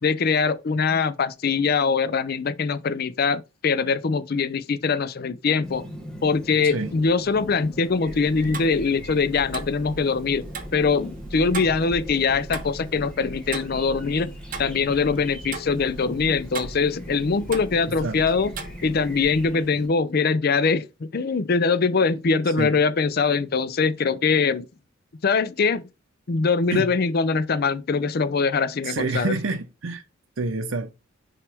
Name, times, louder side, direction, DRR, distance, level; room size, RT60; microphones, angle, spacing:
voice 1, 0.0-5.9 6.2-10.5 10.7-14.3 14.6-18.5 18.8-24.7 25.2-25.9 26.3-29.3, left 5 dB, 50° left, 0.5 m, -23 dB
Chirp tweet, 5.6-19.9, equal, 5° left, 1.4 m, -41 dB
Tick-tock, 8.0-19.5, right 3 dB, 40° right, 0.9 m, -38 dB
voice 2, 28.8-30.0 30.4-30.9, right 3 dB, 70° right, 0.7 m, -27 dB
5.9 x 4.7 x 3.4 m
head